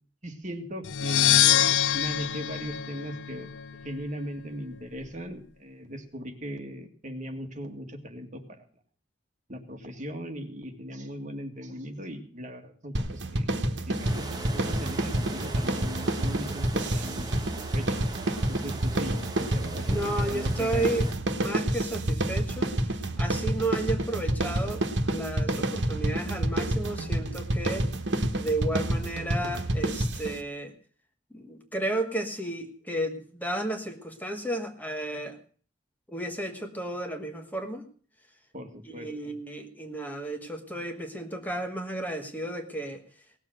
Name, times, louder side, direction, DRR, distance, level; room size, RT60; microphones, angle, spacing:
voice 1, 0.2-3.5 3.8-8.7 9.5-13.5 13.9-17.3 17.7-18.0 18.5-21.1 25.5-25.6 38.5-39.3, equal, 40° right, 5 dB, 1.9 m, -39 dB
sound 1, 0.8-3.7, left 11 dB, 80° left, 0.6 m, -24 dB
sound 2, 12.9-30.4, right 1 dB, 70° right, 1.4 m, -29 dB
sound 3, 13.9-21.1, right 2 dB, 20° right, 1.6 m, -41 dB
voice 2, 19.9-22.7 23.2-27.9 28.3-30.7 31.3-35.4 36.1-37.8 38.9-43.0, right 1 dB, 10° left, 5 dB, 1.3 m, -33 dB
18.0 x 7.4 x 7.6 m, 0.44 s
head